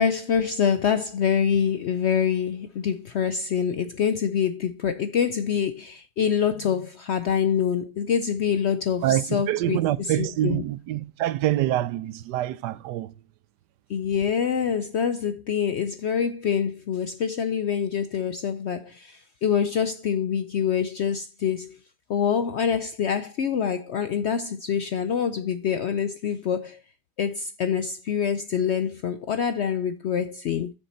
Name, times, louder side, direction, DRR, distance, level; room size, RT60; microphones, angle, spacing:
voice 1, 0.0-9.8 10.2-10.6 13.9-21.8 22.1-26.8 27.2-30.7, left 7 dB, 70° left, 0.6 m, -25 dB
voice 2, 9.0-13.1, right 14 dB, 90° right, 1.2 m, -26 dB
7.5 x 6.6 x 4.2 m
omnidirectional pair, 1.7 m